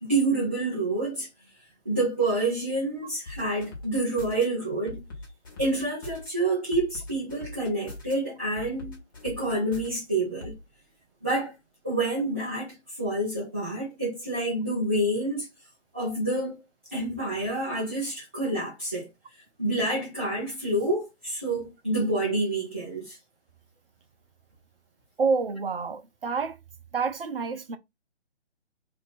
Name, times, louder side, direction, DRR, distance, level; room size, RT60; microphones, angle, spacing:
voice 1, 0.0-1.3 1.9-5.0 5.6-9.0 9.2-10.5 11.2-11.5 11.8-15.5 15.9-16.6 16.9-19.1 19.6-23.2, right 2 dB, 10° right, 0.5 m, -28 dB
sound 1, 3.3-4.4 4.9-6.3 6.7-8.1 8.6-10.0 10.4-10.6, left 2 dB, 20° left, 0.7 m, -41 dB
voice 2, 25.2-26.6 26.9-27.8, right 4 dB, 55° right, 0.6 m, -28 dB
2.7 x 2.5 x 3.8 m
figure-of-eight pair, 145°, 34 cm